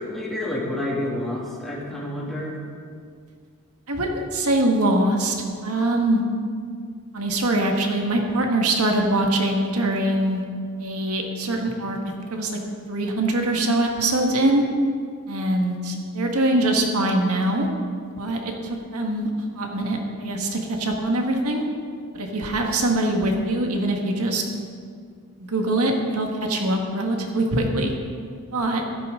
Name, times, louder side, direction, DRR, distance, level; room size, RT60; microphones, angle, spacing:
voice 1, 0.0-2.6, left 1 dB, ahead, -6 dB, 2.5 m, -29 dB
voice 2, 3.9-5.3 5.6-6.2 7.1-10.4 10.8-12.0 12.3-12.6 12.9-14.6 15.3-17.7 18.2-19.3 19.6-21.6 22.1-24.4 25.4-27.9 28.5-28.8, right 1 dB, 85° right, 1 dB, 1.6 m, -23 dB
14.5 x 12.5 x 3.8 m, 2.1 s
head